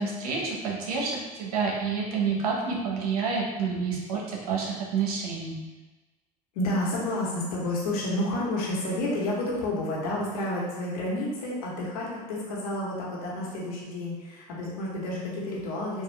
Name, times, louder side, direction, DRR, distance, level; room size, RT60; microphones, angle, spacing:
voice 1, 0.0-5.6, right 5 dB, 85° right, -2 dB, 0.8 m, -29 dB
voice 2, 6.5-16.0, left 1 dB, 80° left, -4 dB, 1.1 m, -30 dB
3.6 x 2.4 x 3.2 m, 1.2 s
hypercardioid pair, 90°, 19 cm